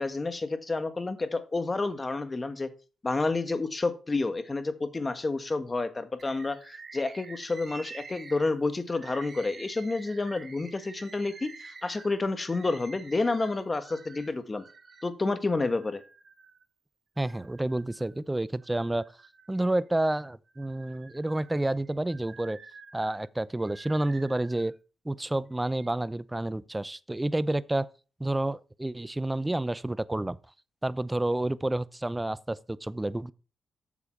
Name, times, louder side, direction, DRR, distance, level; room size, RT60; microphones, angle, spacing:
voice 1, 0.0-2.7 3.0-14.6 15.0-16.0, left 3 dB, 30° left, 1.5 m, -30 dB
Bird, 6.2-15.1 15.6-16.6 17.2-18.2 18.6-20.0 20.5-24.8 25.5-25.9, right 4 dB, 45° right, 1.4 m, -49 dB
voice 2, 17.2-19.0 19.5-22.6 22.9-24.7 25.0-27.9 28.2-30.4 30.8-33.3, right 1 dB, 15° right, 0.6 m, -29 dB
8.4 x 7.1 x 4.5 m
supercardioid pair, 60°, 0 cm